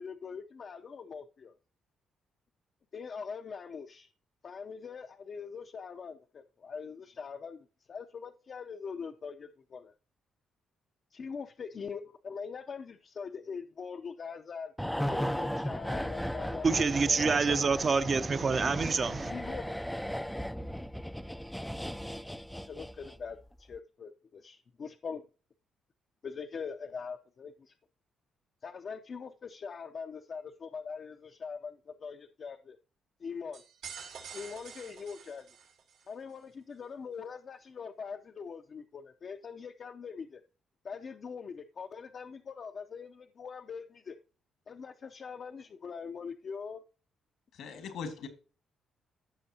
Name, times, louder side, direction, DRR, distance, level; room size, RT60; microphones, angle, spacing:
voice 1, 0.0-1.5 2.9-4.1 4.4-9.9 11.1-14.7 15.1-17.3 19.2-19.7 22.6-25.2 26.2-27.7 28.6-32.8 33.2-33.6 34.3-35.4 36.1-40.4 40.8-44.2 44.7-46.8, left 5 dB, 50° left, 0.6 m, -42 dB
sound 1, 14.8-23.3 23.6-23.8, equal, 5° left, 0.4 m, -36 dB
voice 2, 16.6-19.3, right 4 dB, 40° right, 0.7 m, -27 dB
sound 2, 33.5-36.1, right 7 dB, 85° right, 3.2 m, -47 dB
voice 3, 47.5-48.3, left 6 dB, 75° left, 1.8 m, -40 dB
15.0 x 5.7 x 2.8 m
cardioid pair, 90°, 0 cm